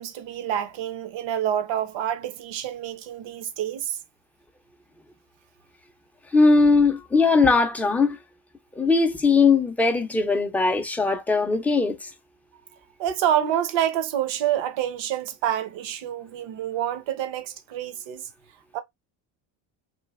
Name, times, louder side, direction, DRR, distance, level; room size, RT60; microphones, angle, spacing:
voice 1, 0.0-4.0 13.0-18.3 18.7-18.8, right 10 dB, 65° right, 0.8 m, -27 dB
voice 2, 6.3-8.2 8.8-12.1, left 4 dB, 5° left, 0.3 m, -20 dB
3.1 x 2.5 x 2.3 m
cardioid pair, 115°, 49 cm